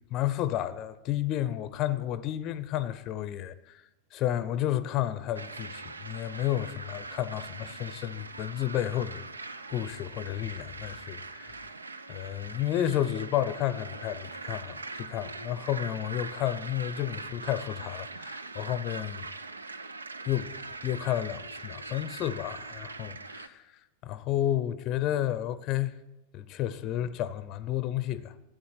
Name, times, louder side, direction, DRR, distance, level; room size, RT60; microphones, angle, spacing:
voice 1, 0.0-3.8 4.1-9.2 9.7-11.7 12.1-19.3 20.3-20.5 20.8-23.7 24.0-25.9 26.3-28.3, left 12 dB, 35° left, 0.6 m, -31 dB
sound 1, 5.3-23.5, right 3 dB, 75° right, 0.6 m, -42 dB
12.5 x 9.4 x 8.2 m
figure-of-eight pair, 90°, 0 cm